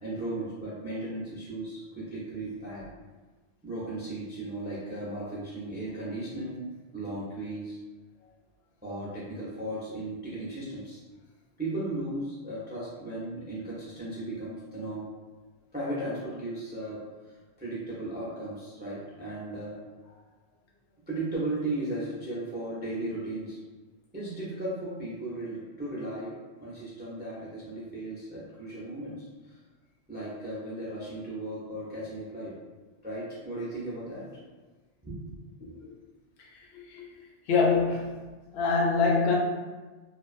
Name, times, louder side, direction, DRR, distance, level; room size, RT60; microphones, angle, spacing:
voice 1, 0.0-3.0 3.6-6.7 6.9-7.8 8.8-11.0 11.6-15.1 15.7-17.0 17.2-19.8 21.1-23.6 24.1-26.3 26.6-29.6 30.1-32.5 33.0-34.3 35.0-35.4, right 1 dB, 15° right, -8 dB, 0.4 m, -36 dB
voice 2, 35.6-35.9 36.5-37.1 37.5-38.1 38.5-39.4, left 4 dB, 70° left, -1 dB, 0.8 m, -25 dB
2.5 x 2.2 x 2.4 m, 1.3 s
omnidirectional pair, 1.1 m